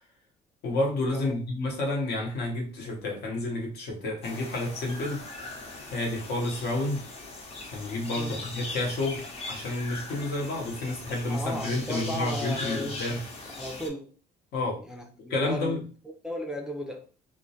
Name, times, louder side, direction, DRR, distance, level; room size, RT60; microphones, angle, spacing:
voice 1, 0.6-5.2 5.9-7.0 7.7-13.2 14.5-14.8 15.2-15.9, left 2 dB, 70° left, 0.9 m, -30 dB
sound 1, 4.2-13.9, left 2 dB, 40° left, 0.7 m, -40 dB
voice 2, 11.3-13.0 13.5-14.2 14.8-17.1, equal, 5° right, 0.4 m, -36 dB
2.2 x 2.1 x 2.7 m
cardioid pair, 110°, 17 cm